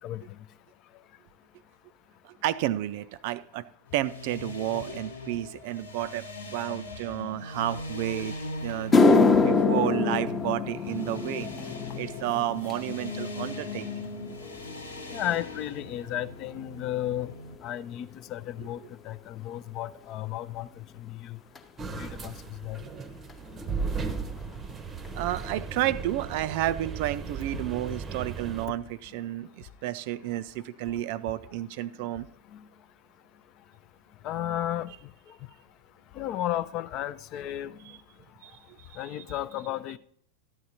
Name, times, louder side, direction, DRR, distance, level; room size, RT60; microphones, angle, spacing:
voice 1, 2.2-3.6 3.9-8.4 8.6-11.5 12.0-14.1 22.9-23.0 25.1-32.3 37.8-38.0 38.4-39.0 39.3-39.4, right 14 dB, 50° right, 15 dB, 0.4 m, -31 dB
sound 1, 3.9-17.6, left 2 dB, 75° left, 1.1 m, -40 dB
sound 2, 8.2-8.3 8.7-17.2 17.5-18.0 18.7-18.8 21.6-21.7 23.3-23.4 23.6-23.8 24.1-24.6 25.0-25.1 25.7-25.8, left 4 dB, 20° left, 0.7 m, -27 dB
voice 2, 15.1-17.3 17.6-18.8 19.1-20.7 21.1-21.4 21.9-22.3 22.6-22.8 27.5-27.6 32.5-32.6 34.2-34.9 36.2-37.8 39.0-40.0, left 12 dB, 35° left, 16 dB, 0.4 m, -33 dB
sound 3, 21.8-28.7, right 5 dB, 20° right, 0.7 m, -36 dB
13.5 x 9.5 x 2.8 m, 0.64 s
figure-of-eight pair, 90°, 0 cm